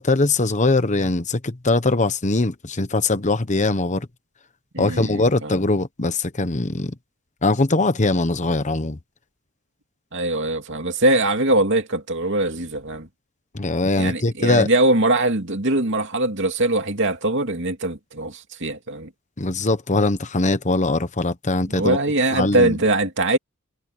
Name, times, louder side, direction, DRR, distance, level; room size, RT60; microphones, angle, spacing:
voice 1, 0.0-4.1 4.8-6.9 7.4-9.0 13.5-14.7 19.4-22.0 22.3-22.7, left 2 dB, 35° left, 1.1 m, -21 dB
voice 2, 4.7-5.6 10.1-13.1 14.0-19.1 21.7-23.4, right 2 dB, 55° right, 2.6 m, -22 dB
head